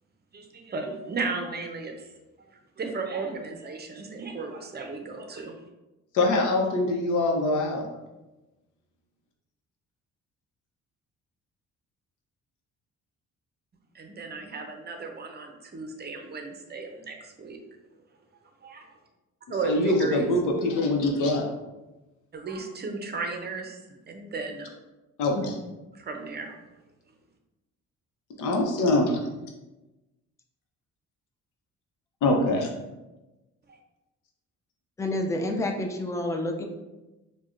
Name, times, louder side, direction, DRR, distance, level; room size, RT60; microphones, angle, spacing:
voice 1, 0.3-1.9 2.8-5.5 13.9-17.6 18.6-18.9 19.5-20.3 22.3-23.8 24.1-24.7 25.9-26.6 33.7-33.8, right 4 dB, 35° right, 3 dB, 0.6 m, -35 dB
voice 2, 6.1-7.8 19.6-21.4 25.2-25.5 28.4-29.2 32.2-32.7, left 2 dB, 85° left, 1 dB, 0.7 m, -24 dB
voice 3, 35.0-36.7, left 1 dB, 10° left, 3 dB, 0.4 m, -29 dB
4.7 x 2.2 x 2.5 m, 1.1 s
cardioid pair, 90°, 30 cm